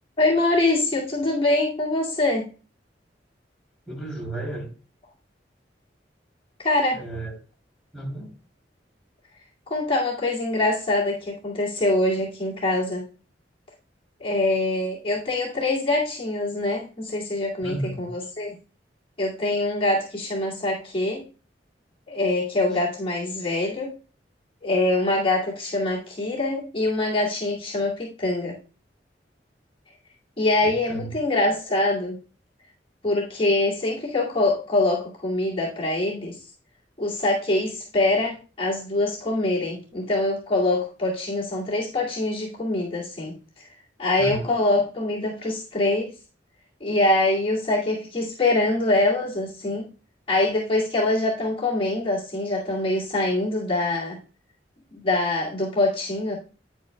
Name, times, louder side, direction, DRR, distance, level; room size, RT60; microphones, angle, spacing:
voice 1, 0.2-2.5 6.6-7.0 9.7-13.1 14.2-18.6 19.2-21.2 22.1-23.9 24.6-28.6 30.4-32.2 33.0-36.5 37.0-46.1 46.8-49.9 50.3-54.2 54.9-56.3, left 2 dB, 30° left, -5 dB, 2.3 m, -24 dB
voice 2, 3.9-4.7 6.9-7.4 7.9-8.3 17.6-18.0 30.6-31.1 44.2-44.5, right 2 dB, 5° left, -2 dB, 2.9 m, -33 dB
9.6 x 8.6 x 2.3 m, 0.35 s
head